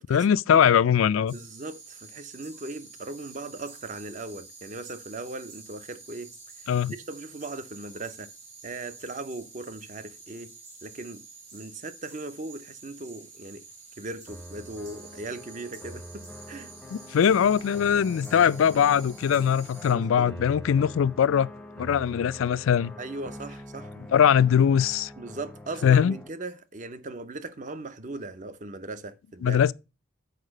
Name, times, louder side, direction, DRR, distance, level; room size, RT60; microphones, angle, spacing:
voice 1, 0.1-1.3 6.7-6.9 16.9-21.5 21.8-22.9 24.1-25.1 25.8-26.2 29.4-29.7, left 8 dB, 70° left, 0.3 m, -21 dB
voice 2, 1.3-6.3 6.9-8.3 8.6-10.5 10.8-11.2 11.5-13.6 14.0-16.7 19.9-20.3 23.0-23.9 25.2-29.6, right 2 dB, 35° right, 0.6 m, -38 dB
sound 1, 1.3-19.9, right 4 dB, 65° right, 3.7 m, -48 dB
sound 2, 14.3-26.3, equal, 5° left, 0.6 m, -44 dB
6.6 x 4.8 x 6.3 m
head